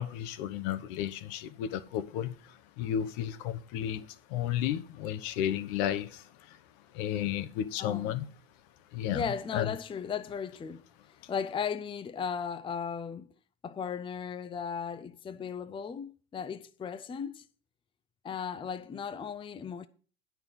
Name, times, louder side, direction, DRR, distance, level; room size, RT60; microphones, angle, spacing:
voice 1, 0.0-6.6 6.9-8.2 8.9-9.2 9.5-9.8, left 10 dB, 60° left, 1.0 m, -33 dB
voice 2, 7.8-8.2 9.1-10.8 11.3-13.3 13.6-17.4 18.2-19.9, left 6 dB, 15° left, 0.6 m, -36 dB
9.6 x 6.0 x 7.1 m
hypercardioid pair, 85°, 31 cm